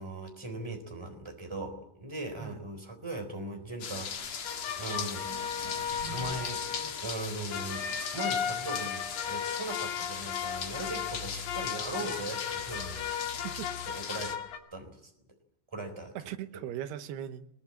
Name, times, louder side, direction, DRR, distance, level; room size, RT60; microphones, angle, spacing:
voice 1, 0.0-5.2 6.1-13.2 13.8-14.4 14.7-14.9 15.7-16.1, right 2 dB, 5° right, 5 dB, 3.2 m, -39 dB
sound 1, 3.8-14.4, left 7 dB, 50° left, 2.3 m, -39 dB
sound 2, 4.0-7.3, right 3 dB, 35° right, 2.9 m, -47 dB
sound 3, 4.4-14.6, left 8 dB, 70° left, 4.1 m, -36 dB
voice 2, 13.1-13.7 16.2-17.5, right 11 dB, 75° right, 10 dB, 3.0 m, -39 dB
21.5 x 21.5 x 8.8 m, 0.83 s
omnidirectional pair, 4.9 m